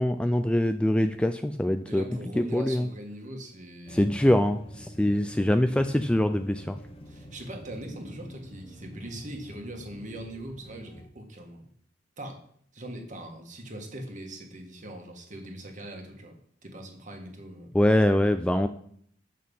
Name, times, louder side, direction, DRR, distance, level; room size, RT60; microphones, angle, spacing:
voice 1, 0.0-2.0 2.4-2.8 3.9-6.8 17.7-18.7, left 1 dB, 5° left, 8 dB, 0.3 m, -24 dB
voice 2, 1.9-4.1 7.1-11.6 12.2-12.4 12.7-16.3 16.6-17.7, right 1 dB, 40° right, 3 dB, 1.8 m, -41 dB
sound 1, 3.9-11.1, equal, 30° left, 1.2 m, -46 dB
8.4 x 6.4 x 5.5 m, 0.62 s
head